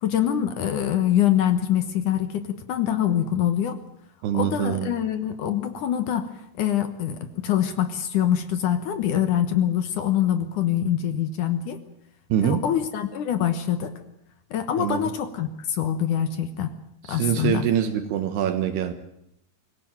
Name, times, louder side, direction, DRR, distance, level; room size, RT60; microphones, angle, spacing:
voice 1, 0.0-3.8 4.3-6.3 6.6-11.8 12.4-13.9 14.5-16.8 17.1-17.6, left 10 dB, 65° left, 9 dB, 2.2 m, -24 dB
voice 2, 4.2-4.9 12.3-12.6 14.8-15.1 17.0-18.9, right 9 dB, 75° right, 9 dB, 3.3 m, -24 dB
24.0 x 16.5 x 9.0 m, 0.78 s
omnidirectional pair, 4.8 m